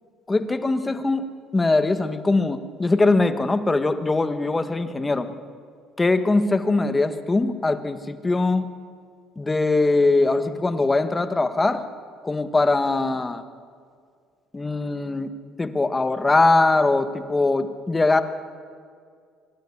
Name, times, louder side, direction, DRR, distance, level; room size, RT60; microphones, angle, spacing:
voice 1, 0.3-1.2 1.5-5.4 6.0-8.7 9.4-11.8 12.2-13.4 14.5-15.3 15.6-18.2, left 3 dB, 20° left, 10 dB, 1.4 m, -21 dB
24.0 x 12.5 x 9.8 m, 2.1 s
supercardioid pair, 90°, 0 cm